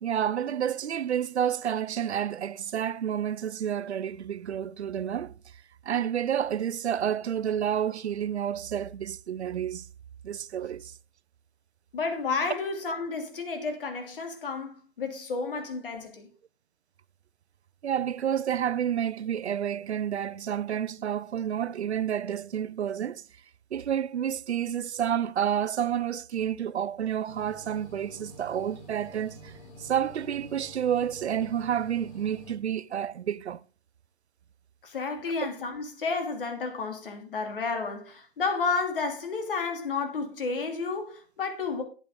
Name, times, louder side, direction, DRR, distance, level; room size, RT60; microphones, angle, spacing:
voice 1, 0.0-5.3 5.8-9.9 10.2-10.9 17.8-23.2 23.7-29.5 29.8-33.6, right 9 dB, 85° right, 0.6 m, -29 dB
voice 2, 11.9-16.3 34.8-41.8, left 4 dB, 55° left, 2.9 m, -31 dB
sound 1, 27.3-32.5, equal, 25° left, 2.5 m, -48 dB
12.0 x 8.5 x 3.7 m
hypercardioid pair, 160°, 33 cm